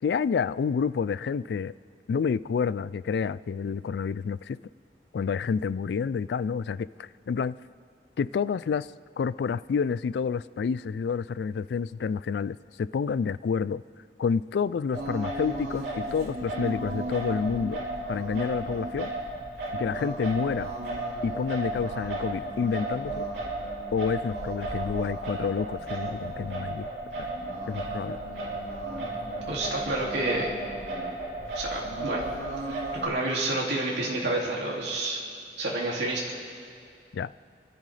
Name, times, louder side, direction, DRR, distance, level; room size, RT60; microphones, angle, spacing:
voice 1, 0.0-1.7 2.1-4.6 5.1-7.6 8.2-8.9 9.2-13.8 14.2-17.8 18.1-19.1 19.7-20.7 21.2-23.3 23.9-26.9 27.7-28.2 37.1-37.3, left 6 dB, 70° left, 18 dB, 0.3 m, -29 dB
Singing, 14.9-33.1, right 2 dB, 65° right, 3.3 m, -34 dB
voice 2, 29.5-30.5 31.5-32.2 32.6-35.2 35.6-36.3, right 2 dB, 90° right, -3 dB, 2.5 m, -29 dB
27.5 x 12.5 x 3.3 m, 2.4 s
head